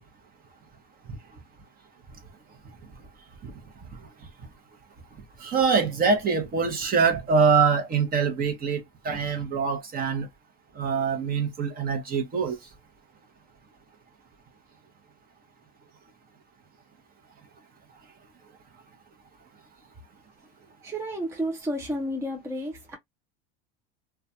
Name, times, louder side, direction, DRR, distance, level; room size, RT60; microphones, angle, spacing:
voice 1, 5.4-10.3 10.8-12.6, right 5 dB, 30° right, 0.9 m, -24 dB
voice 2, 20.4-23.0, equal, 10° right, 0.5 m, -32 dB
2.3 x 2.3 x 2.7 m
supercardioid pair, 110°, 29 cm